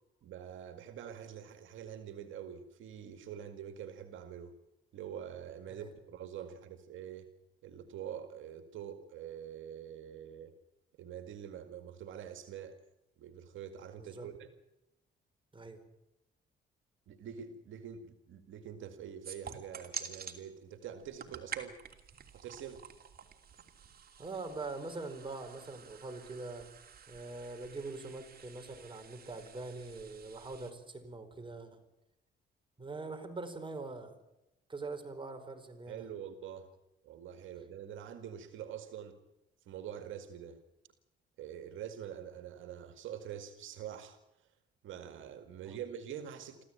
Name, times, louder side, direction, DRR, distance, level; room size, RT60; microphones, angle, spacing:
voice 1, 0.2-4.6 4.9-7.3 7.6-10.5 11.0-12.8 13.2-14.5 17.1-21.8 22.3-22.8 35.9-36.7 37.0-39.2 39.6-40.6 41.4-44.5 44.8-46.6, right 9 dB, 80° right, 8 dB, 2.1 m, -45 dB
voice 2, 14.0-14.3 15.5-15.8 24.2-26.7 27.1-31.8 32.8-34.1 34.7-36.0 45.6-45.8, right 3 dB, 25° right, 6 dB, 4.5 m, -43 dB
sound 1, 19.2-20.4 21.0-30.7, right 6 dB, 50° right, 3.0 m, -49 dB
25.5 x 15.0 x 8.9 m, 0.92 s
cardioid pair, 90°, 20 cm